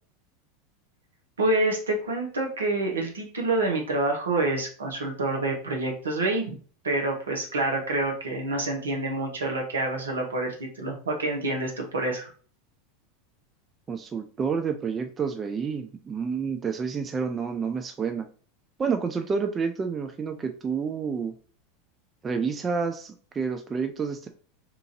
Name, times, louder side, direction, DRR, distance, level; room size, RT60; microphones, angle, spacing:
voice 1, 1.4-6.6 6.8-12.3, right 2 dB, 80° right, 1 dB, 0.8 m, -27 dB
voice 2, 13.9-18.3 18.8-21.3 22.2-24.3, right 5 dB, 25° right, 5 dB, 0.4 m, -29 dB
2.9 x 2.5 x 2.6 m, 0.41 s
hypercardioid pair, 85°, 0 cm